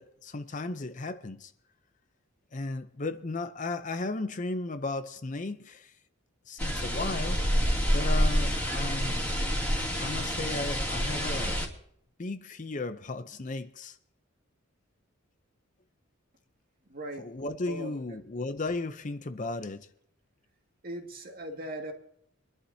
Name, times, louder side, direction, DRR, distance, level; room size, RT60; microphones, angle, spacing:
voice 1, 0.0-1.5 2.5-5.9 6.5-7.4 7.9-9.2 10.0-11.6 12.2-14.0 17.2-19.9, left 2 dB, 35° left, 0.6 m, -35 dB
sound 1, 6.6-11.7, equal, 5° left, 2.6 m, -28 dB
voice 2, 16.9-17.3 17.7-18.2 20.8-21.9, right 1 dB, 45° right, 2.1 m, -39 dB
24.5 x 11.5 x 2.8 m
head